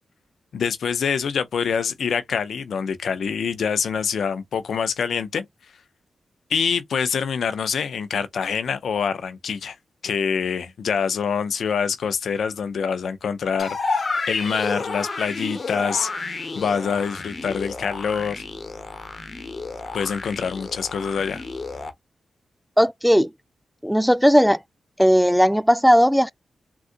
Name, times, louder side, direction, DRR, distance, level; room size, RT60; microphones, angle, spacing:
voice 1, 0.5-5.4 6.5-9.8 10.0-18.4 19.9-21.4, left 6 dB, 75° left, 0.4 m, -25 dB
sound 1, 13.6-21.9, left 3 dB, 50° left, 1.0 m, -31 dB
voice 2, 22.8-23.3 23.8-24.6 25.0-26.3, equal, ahead, 0.3 m, -16 dB
3.7 x 2.3 x 2.5 m
supercardioid pair, 45°, 0 cm